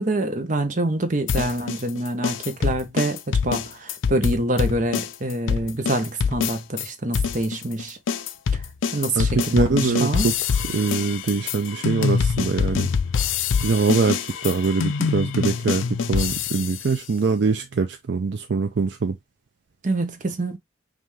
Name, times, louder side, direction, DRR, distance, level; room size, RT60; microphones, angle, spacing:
voice 1, 0.0-8.0 8.9-10.3 19.8-20.6, right 2 dB, 40° right, 0.8 m, -26 dB
sound 1, 1.3-6.9 7.1-16.9, left 6 dB, 80° left, 0.4 m, -25 dB
voice 2, 9.2-10.3 10.6-12.9 13.6-19.2, right 4 dB, 60° right, 0.4 m, -23 dB
5.5 x 2.6 x 3.1 m
head